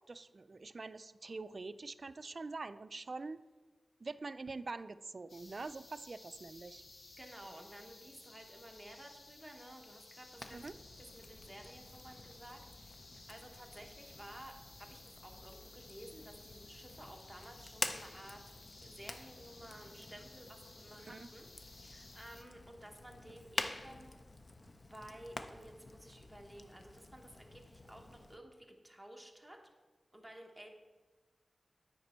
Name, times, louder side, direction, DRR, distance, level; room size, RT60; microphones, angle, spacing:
voice 1, 0.1-3.4 4.0-6.8 10.5-10.7 21.0-21.3, right 3 dB, 50° right, 13 dB, 0.3 m, -45 dB
sound 1, 5.3-22.4, left 2 dB, 70° left, 0.9 m, -57 dB
voice 2, 7.2-10.7 11.0-14.5 14.8-18.5 18.8-24.2 24.9-29.6 30.1-30.7, right 1 dB, 5° right, 1 dB, 1.1 m, -54 dB
Fire, 10.3-28.4, left 2 dB, 40° left, 0.5 m, -48 dB
9.4 x 5.2 x 4.3 m, 1.3 s
wide cardioid pair, 100°, 0 cm